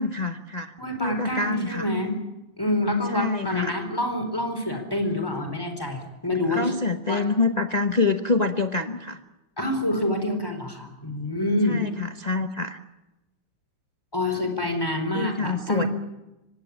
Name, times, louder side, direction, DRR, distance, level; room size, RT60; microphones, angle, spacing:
voice 1, 0.0-0.7 1.0-1.9 3.1-3.8 6.5-9.2 11.6-12.8 15.1-15.9, left 3 dB, 40° left, 6 dB, 0.6 m, -26 dB
voice 2, 0.8-2.2 2.6-6.7 7.1-7.2 9.6-11.8 14.1-15.9, left 1 dB, 10° left, 6 dB, 4.2 m, -27 dB
25.0 x 18.0 x 8.7 m, 1.0 s
omnidirectional pair, 2.3 m